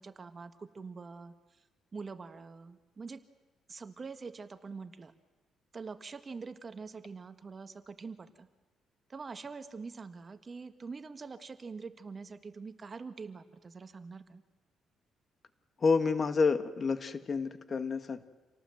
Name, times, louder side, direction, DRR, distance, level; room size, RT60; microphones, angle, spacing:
voice 1, 0.0-1.6 1.9-3.2 3.7-5.1 5.7-8.5 9.1-14.4, right 4 dB, 35° right, 10 dB, 1.4 m, -45 dB
voice 2, 15.8-18.2, left 4 dB, 40° left, 10 dB, 1.5 m, -29 dB
28.0 x 18.5 x 7.8 m, 1.2 s
cardioid pair, 90°, 0 cm